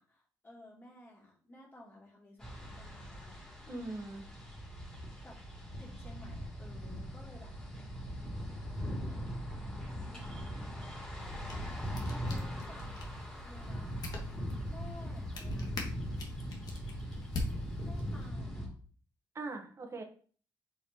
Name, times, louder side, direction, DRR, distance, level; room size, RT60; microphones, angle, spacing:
voice 1, 0.0-3.4 5.2-5.4 5.8-7.6 8.7-9.6 9.9-10.5 12.0-12.8 13.4-13.9 14.7-15.8 17.8-18.8, left 1 dB, 30° left, -4 dB, 2.7 m, -55 dB
sound 1, 2.4-18.7, equal, 10° left, 2.6 m, -40 dB
voice 2, 3.7-4.3 19.3-20.0, right 2 dB, 40° right, 4 dB, 1.2 m, -41 dB
sound 2, 11.2-18.3, left 3 dB, 55° left, 1.5 m, -44 dB
6.9 x 4.6 x 2.9 m, 0.43 s
cardioid pair, 120°, 8 cm